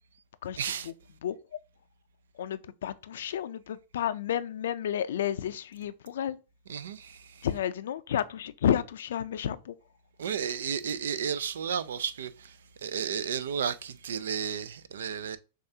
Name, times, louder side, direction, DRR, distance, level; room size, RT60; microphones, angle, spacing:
voice 1, 0.6-0.9 6.7-7.5 10.2-15.4, right 7 dB, 85° right, 0.4 m, -33 dB
voice 2, 1.2-1.6 2.3-6.4 7.4-9.8, left 10 dB, 80° left, 0.4 m, -31 dB
6.3 x 2.4 x 2.7 m
hypercardioid pair, 125°, 0 cm